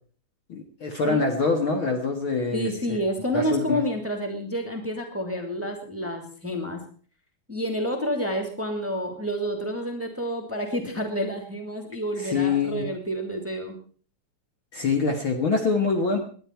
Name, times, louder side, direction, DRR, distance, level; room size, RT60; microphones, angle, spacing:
voice 1, 0.5-3.0 3.3-3.8 12.2-12.8 14.7-16.2, left 4 dB, 45° left, 4 dB, 2.3 m, -25 dB
voice 2, 2.5-6.8 7.5-13.8, equal, 5° right, 3 dB, 2.2 m, -29 dB
19.5 x 11.0 x 4.6 m, 0.43 s
omnidirectional pair, 3.4 m